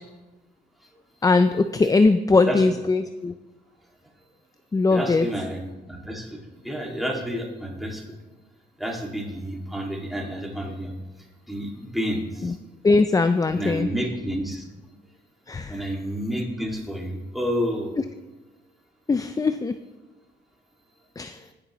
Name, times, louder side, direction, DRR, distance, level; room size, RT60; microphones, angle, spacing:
voice 1, 1.2-3.3 4.7-5.3 12.4-12.5 12.8-13.9 15.5-15.8 19.1-19.8 21.2-21.4, left 3 dB, 20° left, 9 dB, 0.4 m, -20 dB
voice 2, 4.9-5.6 5.9-8.2 8.8-10.9 11.5-12.6 13.5-14.6 15.7-18.0, equal, ahead, -1 dB, 2.2 m, -30 dB
19.5 x 6.7 x 3.1 m, 1.1 s
cardioid pair, 90°, 20 cm